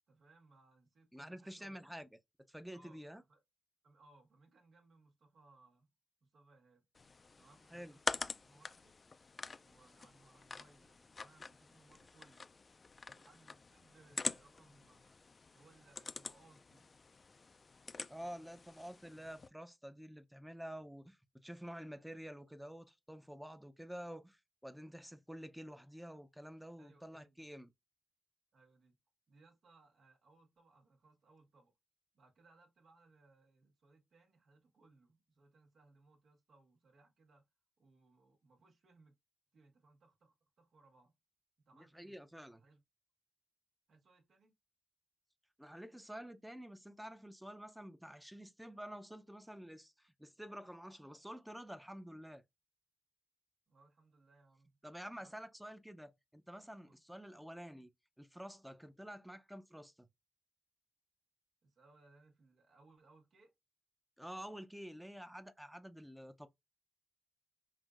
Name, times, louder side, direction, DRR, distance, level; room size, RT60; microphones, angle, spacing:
voice 1, 0.1-1.8 2.7-3.4 3.8-5.9 6.2-6.8 7.4-9.0 9.6-12.6 13.1-15.2 15.5-16.9 26.8-27.5 28.5-28.9 29.3-31.7 32.1-37.4 37.8-39.2 39.5-41.2 41.6-42.2 42.5-42.8 43.9-44.5 53.7-54.8 55.2-55.3 56.9-57.0 61.6-63.5, right 3 dB, 75° right, 1.5 m, -67 dB
voice 2, 1.1-2.2 2.5-3.2 7.7-7.9 18.1-27.7 41.7-42.6 45.6-52.4 54.8-57.9 58.2-60.1 64.2-66.5, equal, 5° right, 0.6 m, -49 dB
sound 1, 7.0-19.5, left 4 dB, 40° left, 0.3 m, -46 dB
5.5 x 2.6 x 2.5 m
cardioid pair, 75°, 0 cm